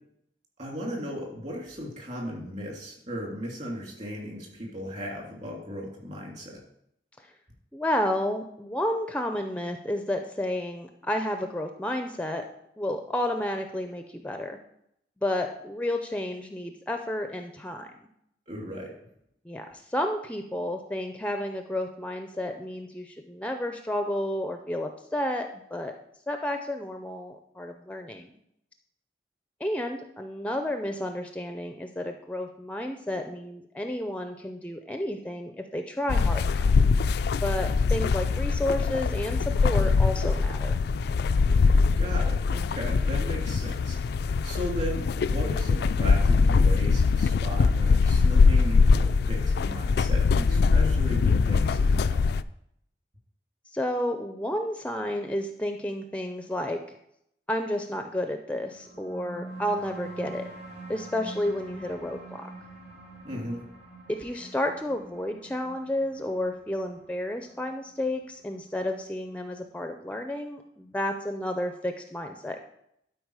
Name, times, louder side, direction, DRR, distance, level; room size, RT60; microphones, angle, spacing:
voice 1, 0.6-6.6 18.5-18.9 42.0-52.2 63.2-63.6, equal, 45° right, -2 dB, 3.0 m, -36 dB
voice 2, 7.7-12.5 12.8-14.6 15.2-17.9 19.5-26.0 26.3-28.3 29.6-36.6 37.4-40.8 53.7-56.8 57.5-60.5 60.9-62.5 64.1-72.6, left 1 dB, 10° left, 5 dB, 0.5 m, -31 dB
sound 1, 36.1-52.4, left 4 dB, 65° left, 0.3 m, -22 dB
sound 2, 58.7-69.7, right 2 dB, 70° right, 3.1 m, -45 dB
11.5 x 4.8 x 4.8 m, 0.75 s
head